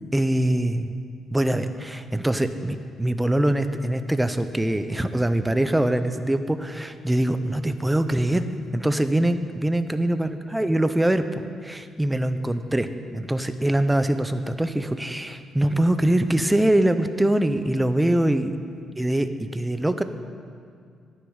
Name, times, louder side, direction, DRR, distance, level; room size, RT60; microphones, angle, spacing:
voice 1, 0.1-0.9 1.3-8.5 8.7-11.3 11.6-18.6 19.0-20.0, right 1 dB, 10° right, 10 dB, 0.6 m, -23 dB
11.5 x 10.0 x 4.9 m, 2.2 s
cardioid pair, 90°, 0 cm